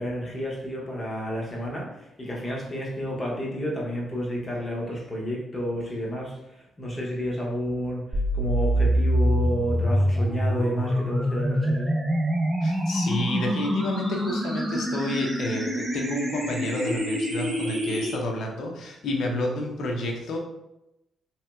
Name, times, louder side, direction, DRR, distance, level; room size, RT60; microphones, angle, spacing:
voice 1, 0.0-11.9, equal, 20° left, -3 dB, 0.6 m, -31 dB
sound 1, 8.1-18.1, equal, 20° right, 0.8 m, -25 dB
voice 2, 12.6-20.4, left 1 dB, 65° left, 1 dB, 0.6 m, -30 dB
3.2 x 2.9 x 2.2 m, 0.90 s
cardioid pair, 165°, 0 cm